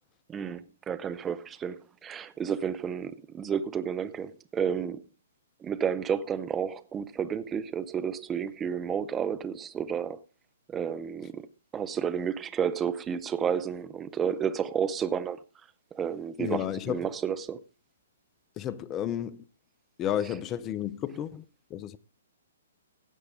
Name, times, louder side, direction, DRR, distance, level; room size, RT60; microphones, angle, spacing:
voice 1, 0.3-5.0 5.6-10.2 10.7-11.5 11.7-15.4 15.9-17.6 20.2-20.3, right 7 dB, 15° right, 0.7 m, -31 dB
voice 2, 16.4-17.0 18.6-19.4 20.0-21.4 21.7-22.0, left 10 dB, 25° left, 0.7 m, -32 dB
15.5 x 8.0 x 3.7 m
hypercardioid pair, 125°, 0 cm